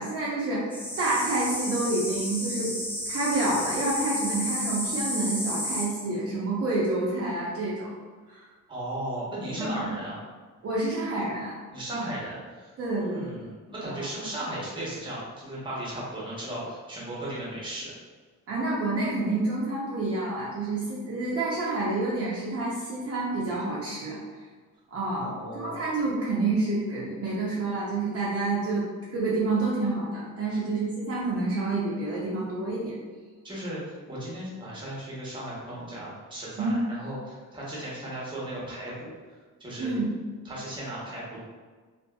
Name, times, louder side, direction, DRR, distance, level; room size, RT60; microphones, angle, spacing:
voice 1, 0.0-2.7 3.1-7.9 8.3-8.5 9.6-9.9 10.6-11.6 12.8-13.3 13.8-14.0 18.5-24.2 24.9-28.9 29.1-33.0 36.6-36.8 39.8-40.1, right 2 dB, 50° right, -7 dB, 0.6 m, -28 dB
sound 1, 0.7-5.9, equal, 5° left, 0.4 m, -32 dB
voice 2, 8.7-10.2 11.7-17.9 25.1-25.8 33.4-40.0 40.4-41.4, right 1 dB, 15° right, -6 dB, 0.9 m, -36 dB
2.7 x 2.5 x 2.2 m, 1.4 s
cardioid pair, 140°, 32 cm